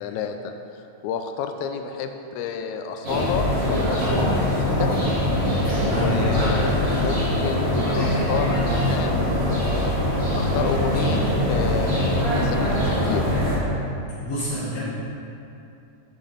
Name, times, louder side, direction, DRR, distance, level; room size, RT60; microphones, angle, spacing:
voice 1, 0.0-4.9 5.9-9.9 10.4-13.3, left 6 dB, 85° left, 6 dB, 2.0 m, -30 dB
sound 1, 3.0-13.6, equal, 35° right, 1.7 m, -22 dB
voice 2, 5.6-6.2 14.2-14.8, equal, 65° left, -10 dB, 2.4 m, -29 dB
8.3 x 6.6 x 3.9 m, 2.7 s
omnidirectional pair, 3.3 m